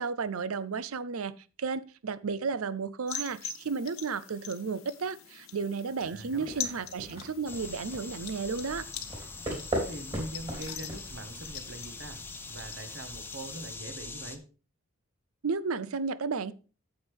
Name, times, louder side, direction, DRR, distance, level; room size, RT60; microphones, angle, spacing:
voice 1, 0.0-1.3 1.6-8.9 15.4-16.5, right 5 dB, 85° right, 17 dB, 0.6 m, -33 dB
sound 1, 3.1-13.7, left 6 dB, 85° left, 1.4 m, -44 dB
sound 2, 6.0-11.6, right 1 dB, 25° right, 3.5 m, -38 dB
voice 2, 6.0-6.8 9.7-12.2 12.5-14.5, right 2 dB, 55° right, 8 dB, 1.4 m, -43 dB
sound 3, 7.5-14.4, left 3 dB, 10° left, 0.8 m, -43 dB
9.5 x 8.0 x 3.4 m, 0.34 s
head